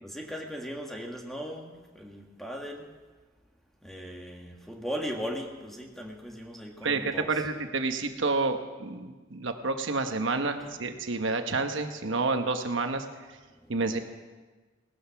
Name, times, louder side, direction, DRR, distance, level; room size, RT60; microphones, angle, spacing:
voice 1, 0.0-2.9 3.8-7.3 10.6-10.7 13.5-13.7, equal, ahead, 1 dB, 1.6 m, -38 dB
voice 2, 6.8-13.4 13.7-14.0, right 3 dB, 65° right, 6 dB, 1.1 m, -29 dB
18.0 x 13.0 x 5.8 m, 1.3 s
head